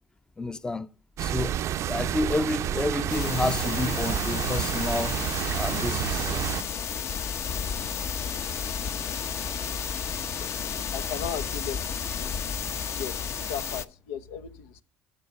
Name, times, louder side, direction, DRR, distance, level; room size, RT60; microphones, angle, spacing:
voice 1, 0.4-0.9 1.2-5.2 5.5-6.3, left 2 dB, 10° left, 0.6 m, -30 dB
sound 1, 1.2-6.6, right 11 dB, 50° right, 0.6 m, -29 dB
sound 2, 3.1-13.8, left 7 dB, 45° left, 0.9 m, -32 dB
voice 2, 10.9-11.9 12.1-12.3 12.9-14.8, left 8 dB, 85° left, 1.0 m, -36 dB
13.5 x 7.1 x 5.4 m
supercardioid pair, 95°, 6 cm